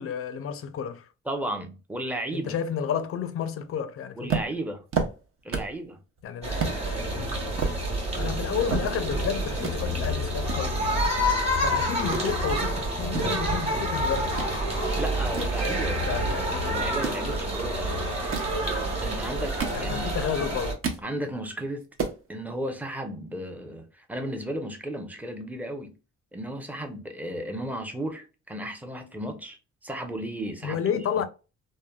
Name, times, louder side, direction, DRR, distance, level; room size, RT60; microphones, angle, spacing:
voice 1, 0.0-1.1 2.3-4.3 6.2-6.8 7.1-7.4 8.2-11.1 11.6-14.3 16.1-16.8 19.7-20.7 30.6-31.2, left 7 dB, 50° left, 0.4 m, -31 dB
voice 2, 1.3-2.5 4.2-4.8 5.4-6.0 15.0-17.9 19.0-20.1 20.4-20.5 21.0-21.8 22.3-25.9 26.3-31.0, right 1 dB, 5° right, 0.6 m, -34 dB
sound 1, 4.3-5.8 6.2-6.3 6.6-6.8 7.3-9.3 9.6-9.8 10.5-11.7 11.9-12.3 12.8-14.5 14.9-16.2 16.9-17.3 18.1-18.6 19.2-20.2 20.5-21.1 21.5-21.6 21.8-22.2, right 5 dB, 45° right, 0.7 m, -32 dB
sound 2, 6.4-20.7, equal, 20° right, 1.2 m, -28 dB
3.1 x 2.2 x 2.2 m
cardioid pair, 90°, 30 cm